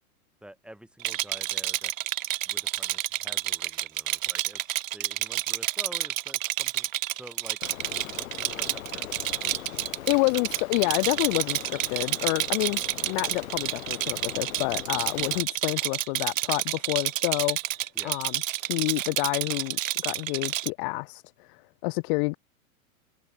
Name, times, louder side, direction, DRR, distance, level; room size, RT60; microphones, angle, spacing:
voice 1, 0.4-2.2 2.5-6.9 7.1-7.6 8.0-9.4 17.9-18.2, right 1 dB, ahead, 4.5 m, -48 dB
Rattle, 1.0-20.7, right 15 dB, 65° right, 1.4 m, -29 dB
Rain, 7.6-15.4, left 11 dB, 70° left, 4.6 m, -41 dB
voice 2, 10.1-17.6 18.0-22.4, left 32 dB, 40° left, 0.5 m, -28 dB
hypercardioid pair, 105°, 42 cm